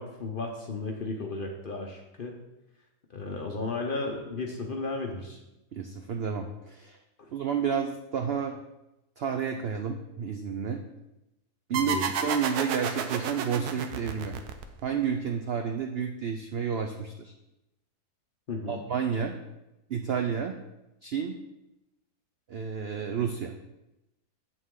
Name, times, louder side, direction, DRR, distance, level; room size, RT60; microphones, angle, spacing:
voice 1, 0.0-2.4 3.1-5.4 7.2-7.3 11.7-12.1 18.5-18.8, left 3 dB, 45° left, 2 dB, 0.7 m, -34 dB
voice 2, 5.7-7.0 7.3-8.6 9.2-10.8 11.7-12.0 12.2-14.4 14.8-17.3 18.7-19.3 19.9-20.5 21.0-21.3 22.5-23.5, right 7 dB, 70° right, 4 dB, 0.6 m, -30 dB
sound 1, 11.7-15.0, right 7 dB, 85° right, 1.2 m, -31 dB
7.8 x 6.3 x 3.7 m, 0.93 s
omnidirectional pair, 1.6 m